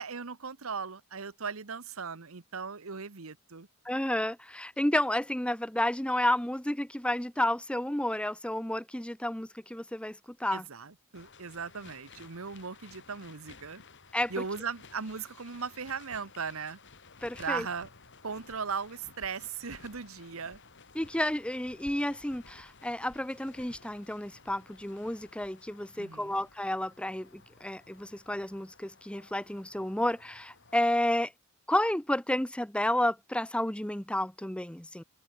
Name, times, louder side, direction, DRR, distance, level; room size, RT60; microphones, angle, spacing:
voice 1, 0.0-3.7 10.5-13.8 14.3-16.8 17.4-17.9 18.2-20.6 26.0-26.4, right 5 dB, 70° right, 1.2 m, -38 dB
voice 2, 3.8-10.6 14.1-14.3 17.2-17.7 20.9-31.3 31.7-35.0, left 1 dB, 5° left, 1.0 m, -31 dB
sound 1, 11.1-30.8, left 4 dB, 60° left, 5.4 m, -55 dB
open air
head